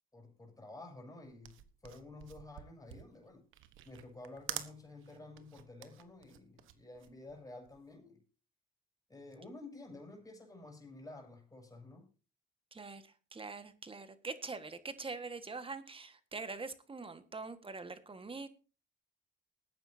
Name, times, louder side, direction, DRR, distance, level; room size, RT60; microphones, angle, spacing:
voice 1, 0.1-3.4 3.8-8.2 9.1-12.1, left 2 dB, 15° left, 7.2 m, -51 dB
sound 1, 1.3-7.9, right 12 dB, 85° right, 1.3 m, -48 dB
voice 2, 12.7-18.5, right 4 dB, 25° right, 1.7 m, -44 dB
20.5 x 9.6 x 2.8 m
cardioid pair, 90°, 20 cm